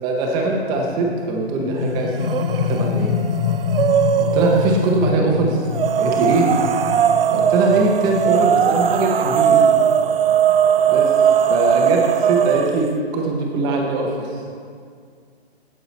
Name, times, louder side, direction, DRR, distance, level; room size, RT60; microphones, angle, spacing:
voice 1, 0.0-2.1 2.6-3.1 4.2-5.7 6.0-6.5 7.3-9.6 10.9-11.1 11.5-14.4, right 2 dB, 10° right, 0 dB, 0.7 m, -21 dB
sound 1, 0.7-12.2, left 8 dB, 75° left, 0.7 m, -27 dB
sound 2, 2.2-2.8 3.1-5.0 5.7-12.9, right 8 dB, 60° right, 0.5 m, -18 dB
9.4 x 8.6 x 4.1 m, 2.1 s
hypercardioid pair, 155°, 32 cm